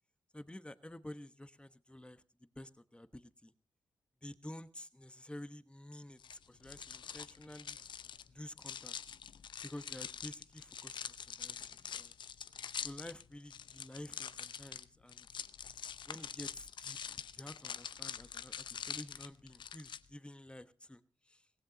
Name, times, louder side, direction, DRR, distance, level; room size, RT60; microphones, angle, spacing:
voice 1, 0.3-3.5 4.2-7.8 8.3-9.0 9.6-12.1 12.8-15.3 16.0-17.0 17.3-21.5, left 1 dB, 10° left, 13 dB, 1.1 m, -50 dB
sound 1, 6.2-20.0, left 8 dB, 70° left, 0.6 m, -45 dB
16.5 x 15.5 x 3.9 m, 0.35 s
supercardioid pair, 40°, 8 cm